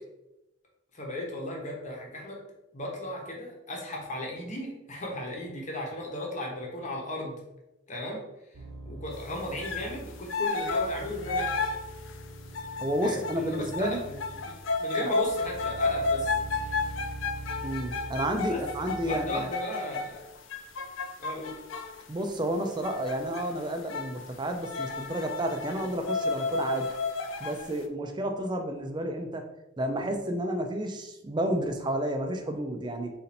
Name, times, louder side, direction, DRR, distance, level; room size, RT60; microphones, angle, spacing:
voice 1, 0.9-2.4 2.7-7.4 7.9-8.2 8.8-11.7 13.0-14.1 14.5-16.4 18.5-20.2 21.2-21.5, left 1 dB, 35° left, -1 dB, 1.0 m, -36 dB
sound 1, 8.5-10.2 10.6-14.8 15.3-19.4, right 1 dB, 80° right, 0.7 m, -43 dB
sound 2, 9.6-9.9 10.3-22.0 22.8-23.5 23.8-24.3 24.6-27.7, left 3 dB, 65° left, 0.5 m, -32 dB
voice 2, 12.8-14.0 15.0-15.1 17.6-19.5 22.1-26.9 27.4-29.4 29.8-33.1, right 1 dB, 20° right, 5 dB, 0.4 m, -31 dB
4.2 x 2.6 x 4.1 m, 0.93 s
head